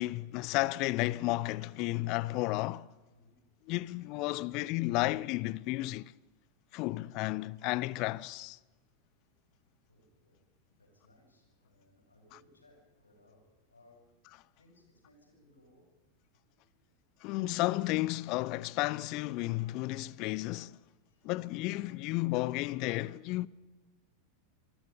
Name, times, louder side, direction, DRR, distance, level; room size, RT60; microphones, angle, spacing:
voice 1, 0.0-2.9 3.7-6.1 6.7-8.6 17.2-20.8 21.2-23.5, left 19 dB, 40° left, 0.6 m, -32 dB
voice 2, 3.1-3.6 9.9-14.2 14.6-15.9 16.2-17.0 21.1-21.3, left 1 dB, 75° left, 7.4 m, -65 dB
27.5 x 20.5 x 5.3 m
figure-of-eight pair, 90°, 0 cm